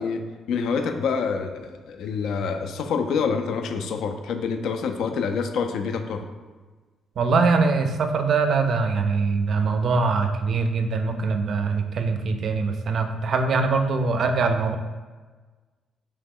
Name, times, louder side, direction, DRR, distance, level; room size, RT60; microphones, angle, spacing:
voice 1, 0.0-6.2, left 5 dB, 75° left, 6 dB, 0.3 m, -27 dB
voice 2, 7.2-14.8, right 4 dB, 60° right, 7 dB, 0.4 m, -23 dB
3.0 x 2.8 x 3.7 m, 1.3 s
cardioid pair, 90°, 0 cm